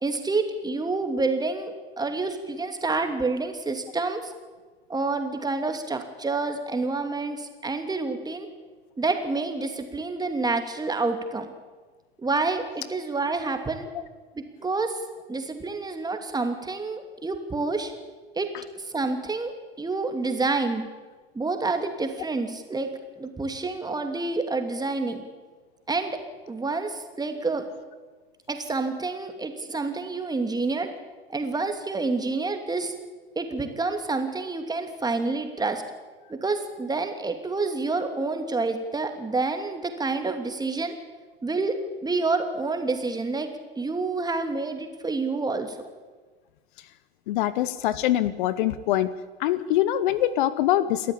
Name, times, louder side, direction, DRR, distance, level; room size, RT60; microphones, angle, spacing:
voice 1, 0.0-4.3 4.9-8.5 9.0-11.5 12.2-13.9 14.3-15.0 15.3-17.9 18.4-18.5 18.8-20.8 21.3-25.2 25.9-26.2 26.5-27.7 28.5-30.9 31.3-32.9 33.3-35.8 36.3-41.0 41.4-43.5 43.8-45.8, right 3 dB, 15° right, 6 dB, 2.8 m, -28 dB
voice 2, 47.3-49.1 49.4-51.1, left 13 dB, 55° left, 16 dB, 1.0 m, -24 dB
29.0 x 13.0 x 8.6 m, 1.4 s
figure-of-eight pair, 75°, 30 cm